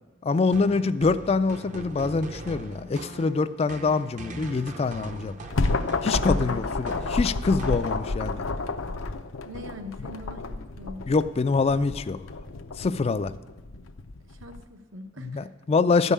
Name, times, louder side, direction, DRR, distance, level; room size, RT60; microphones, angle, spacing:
voice 1, 0.2-5.3 6.0-8.4 11.1-12.2 12.8-13.3 15.2-16.1, left 4 dB, 30° left, 13 dB, 0.3 m, -25 dB
sound 1, 0.5-8.3, right 1 dB, 40° right, 0.6 m, -41 dB
sound 2, 5.1-14.6, left 3 dB, 90° left, 0.7 m, -30 dB
voice 2, 9.4-11.0 14.2-15.5, left 1 dB, 75° right, 5 dB, 1.0 m, -42 dB
13.0 x 5.5 x 8.3 m, 1.2 s
head